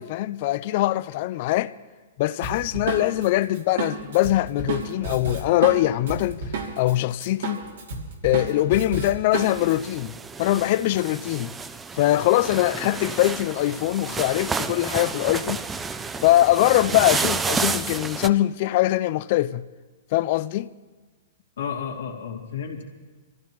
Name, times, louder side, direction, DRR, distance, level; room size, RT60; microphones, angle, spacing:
voice 1, 0.0-1.7 2.2-6.4 6.8-7.6 8.2-10.1 10.4-11.5 12.0-15.6 16.2-19.6 20.1-20.7, left 15 dB, 50° left, 0.4 m, -22 dB
Drum kit, 2.4-6.9 7.2-9.7, right 4 dB, 80° right, 2.8 m, -31 dB
sound 1, 9.3-18.3, right 4 dB, 15° right, 0.5 m, -30 dB
voice 2, 21.6-22.8, left 7 dB, 80° left, 2.4 m, -32 dB
25.5 x 14.5 x 3.0 m
hypercardioid pair, 140°, 0 cm